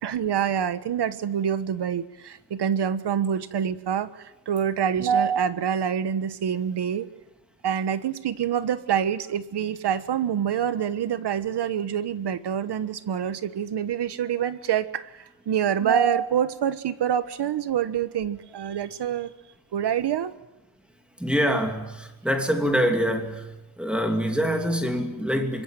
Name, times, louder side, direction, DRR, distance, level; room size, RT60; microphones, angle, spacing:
voice 1, 0.0-7.1 7.6-19.3 19.7-20.3, right 8 dB, 60° right, 1.4 m, -26 dB
voice 2, 21.2-23.5 23.8-25.6, equal, ahead, 3.0 m, -25 dB
25.5 x 22.0 x 9.3 m
wide cardioid pair, 170°, 45 cm